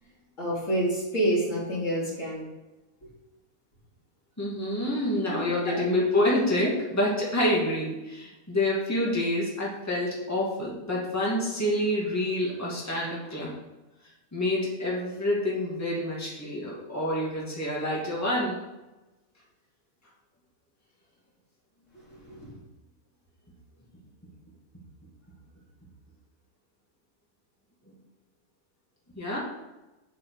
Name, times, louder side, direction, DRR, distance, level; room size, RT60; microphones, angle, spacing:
voice 1, 0.4-2.5 5.3-5.9 21.9-22.4, right 1 dB, 60° left, -6 dB, 3.7 m, -28 dB
voice 2, 4.4-13.5 14.3-18.6 29.1-29.4, left 1 dB, 10° left, -5 dB, 2.4 m, -27 dB
8.4 x 8.4 x 4.9 m, 1.0 s
omnidirectional pair, 1.5 m